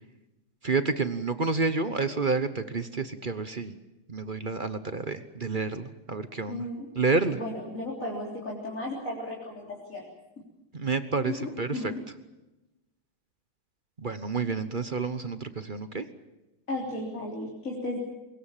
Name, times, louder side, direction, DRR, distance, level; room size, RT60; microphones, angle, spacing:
voice 1, 0.6-3.7 4.1-6.7 7.0-7.4 10.7-11.8 14.0-16.0, right 4 dB, 35° right, 11 dB, 0.8 m, -29 dB
voice 2, 6.5-6.9 7.4-10.0 11.3-12.0 16.7-18.0, left 2 dB, 40° left, -3 dB, 4.2 m, -35 dB
24.5 x 22.0 x 7.4 m, 0.99 s
omnidirectional pair, 2.2 m